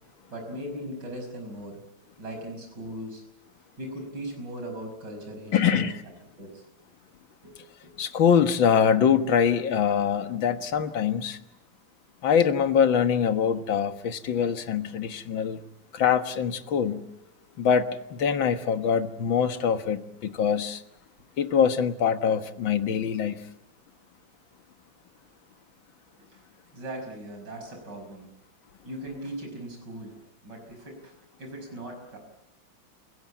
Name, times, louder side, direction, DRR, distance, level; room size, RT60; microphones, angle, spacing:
voice 1, 0.3-1.8 2.2-3.2 3.8-5.9 6.4-6.6 7.4-7.6 7.8-7.9 17.4-17.5 26.2-26.4 26.7-28.3 28.8-31.1 31.4-32.2, right 1 dB, 60° right, 6.3 m, -39 dB
voice 2, 5.5-6.0 8.0-11.4 12.2-15.6 15.9-17.0 17.6-20.8 21.4-23.4, left 7 dB, 80° left, 2.1 m, -24 dB
29.5 x 17.0 x 8.7 m
omnidirectional pair, 2.1 m